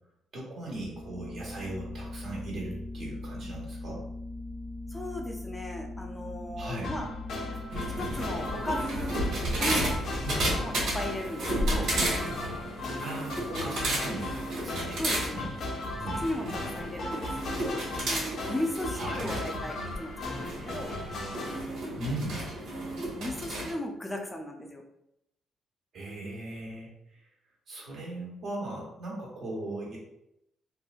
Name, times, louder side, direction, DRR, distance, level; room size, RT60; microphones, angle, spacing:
voice 1, 0.3-4.0 6.6-6.9 10.2-10.4 13.0-15.5 16.0-16.2 18.9-19.4 22.0-22.4 25.9-27.2 27.7-30.0, right 1 dB, 65° right, -3 dB, 1.2 m, -38 dB
sound 1, 0.7-10.0, left 2 dB, 35° right, 0.9 m, -40 dB
voice 2, 4.9-7.1 8.0-9.2 9.6-9.9 10.6-11.9 13.4-13.8 15.0-15.5 16.0-20.9 23.0-24.8, left 1 dB, 15° left, 2 dB, 0.4 m, -37 dB
sound 2, 6.8-21.6, left 2 dB, 65° left, 0.6 m, -37 dB
sound 3, 7.7-23.7, right 1 dB, 80° right, 1.3 m, -33 dB
2.9 x 2.6 x 2.4 m, 0.81 s
cardioid pair, 90°, 0 cm